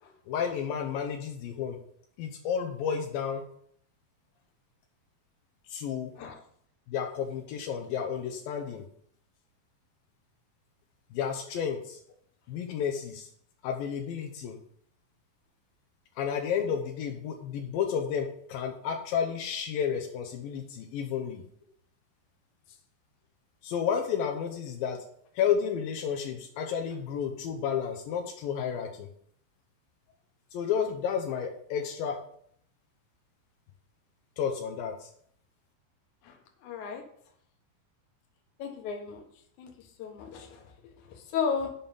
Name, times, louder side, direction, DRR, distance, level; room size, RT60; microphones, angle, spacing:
voice 1, 0.3-1.8 2.2-3.4 5.7-6.1 6.9-8.8 11.1-12.0 12.5-13.3 13.6-14.6 16.2-21.4 23.6-25.0 25.4-29.1 30.5-32.2 34.4-35.1, left 7 dB, 80° left, 3 dB, 2.6 m, -31 dB
voice 2, 36.2-37.0 38.6-39.2 39.6-41.7, left 6 dB, 65° left, 3 dB, 2.5 m, -35 dB
7.5 x 5.5 x 7.0 m, 0.65 s
omnidirectional pair, 4.2 m